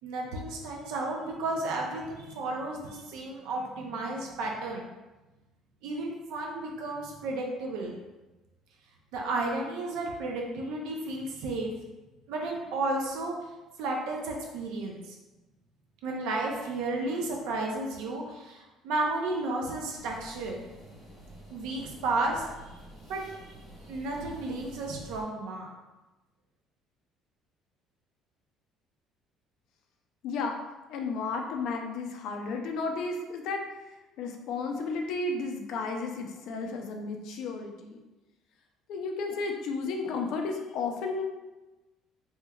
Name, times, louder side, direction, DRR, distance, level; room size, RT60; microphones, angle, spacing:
voice 1, 0.0-4.9 5.8-8.0 9.1-11.7 12.3-13.3 13.8-15.1 16.0-20.6 21.5-22.4 23.1-23.3 23.9-25.7, right 2 dB, 80° right, 0 dB, 0.5 m, -33 dB
sound 1, 19.9-25.2, right 1 dB, 15° right, 1.3 m, -49 dB
voice 2, 30.2-30.6 30.9-33.6 34.2-38.0 38.9-41.2, left 4 dB, 60° left, 3 dB, 0.4 m, -33 dB
3.3 x 3.0 x 2.2 m, 1.1 s
cardioid pair, 175°, 0 cm